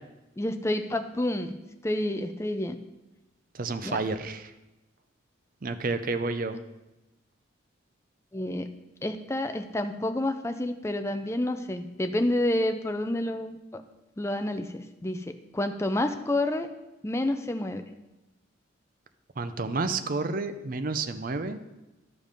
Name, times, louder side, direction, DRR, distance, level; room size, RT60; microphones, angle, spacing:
voice 1, 0.4-1.6 1.8-2.8 3.8-4.0 8.3-8.7 9.0-13.8 14.2-16.7 17.0-17.8, left 1 dB, 15° left, 8 dB, 0.4 m, -29 dB
voice 2, 3.5-4.5 5.6-6.6 19.4-21.6, right 3 dB, 45° right, 10 dB, 0.5 m, -30 dB
12.0 x 5.2 x 5.2 m, 1.0 s
head